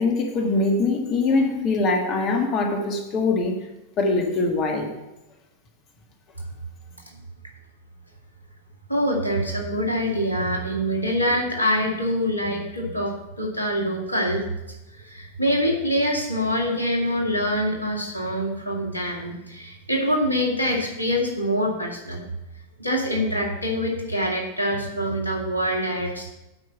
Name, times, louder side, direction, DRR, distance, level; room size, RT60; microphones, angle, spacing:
voice 1, 0.0-3.6 4.0-4.9, left 3 dB, 35° left, 2 dB, 1.6 m, -22 dB
voice 2, 8.9-14.4 14.9-22.2 22.8-26.3, equal, 85° left, -1 dB, 2.1 m, -25 dB
9.5 x 5.4 x 7.2 m, 0.98 s
figure-of-eight pair, 90°, 0 cm